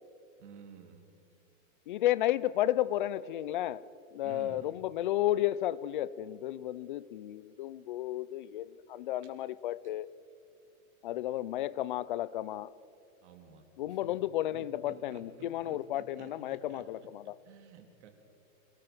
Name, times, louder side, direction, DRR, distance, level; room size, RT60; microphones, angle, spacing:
voice 1, 0.4-1.0 4.2-4.6 13.2-14.1 14.5-17.1 17.5-18.1, right 6 dB, 55° right, 4 dB, 3.3 m, -52 dB
voice 2, 1.9-3.8 4.1-10.1 11.0-12.7 13.8-17.4, left 13 dB, 40° left, 20 dB, 0.5 m, -32 dB
27.0 x 19.5 x 6.1 m, 2.5 s
supercardioid pair, 160°, 41 cm